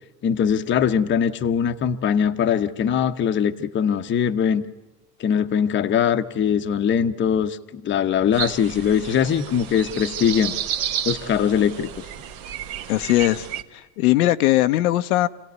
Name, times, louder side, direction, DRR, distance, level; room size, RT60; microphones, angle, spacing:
voice 1, 0.2-4.6 5.2-10.5 11.0-12.0, left 8 dB, 25° left, 8 dB, 0.9 m, -21 dB
sound 1, 8.3-13.6, right 9 dB, 50° right, 1.5 m, -31 dB
voice 2, 12.9-13.5 13.7-15.3, left 16 dB, 80° left, 10 dB, 0.9 m, -19 dB
26.0 x 17.0 x 9.5 m, 1.0 s
supercardioid pair, 120°, 43 cm